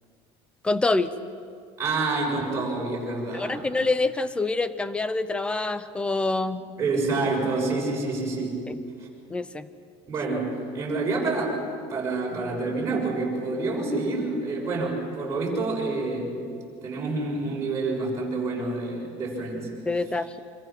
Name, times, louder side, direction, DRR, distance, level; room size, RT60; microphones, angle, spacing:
voice 1, 0.6-1.1 3.3-6.6 8.7-8.8 9.3-9.7 19.9-20.4, left 3 dB, 10° left, 13 dB, 0.7 m, -26 dB
voice 2, 1.8-3.7 6.8-8.6 10.1-16.4 16.8-19.7, right 3 dB, 20° right, -3 dB, 6.6 m, -28 dB
26.0 x 26.0 x 6.1 m, 2.3 s
cardioid pair, 170°, 13 cm